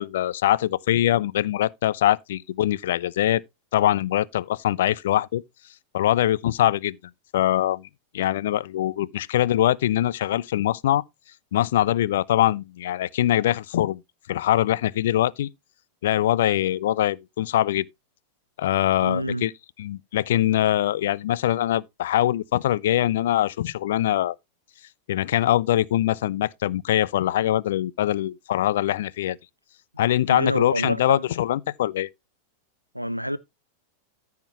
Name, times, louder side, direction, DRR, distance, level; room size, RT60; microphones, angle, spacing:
voice 1, 0.0-3.4 3.7-5.4 5.9-7.0 7.3-7.9 8.1-11.0 11.5-14.0 14.3-15.5 16.0-17.9 18.6-19.5 19.8-24.4 25.1-29.4 30.0-32.1, left 13 dB, 60° left, 0.5 m, -23 dB
voice 2, 19.0-19.5 30.3-31.2 32.9-33.4, equal, 90° right, 0.6 m, -27 dB
14.0 x 5.8 x 2.9 m
figure-of-eight pair, 90°, 0 cm